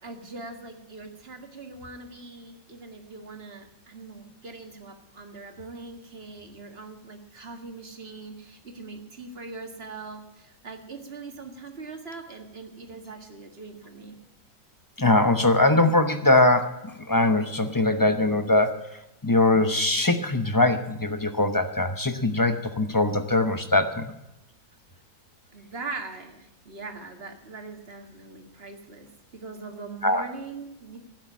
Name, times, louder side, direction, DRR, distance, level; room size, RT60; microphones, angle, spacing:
voice 1, 0.0-14.2 25.5-31.0, right 3 dB, 35° right, 5 dB, 2.0 m, -41 dB
voice 2, 15.0-18.9 19.2-24.1 30.0-30.2, left 2 dB, 20° left, 8 dB, 0.6 m, -22 dB
12.0 x 9.8 x 9.9 m, 0.91 s
omnidirectional pair, 1.9 m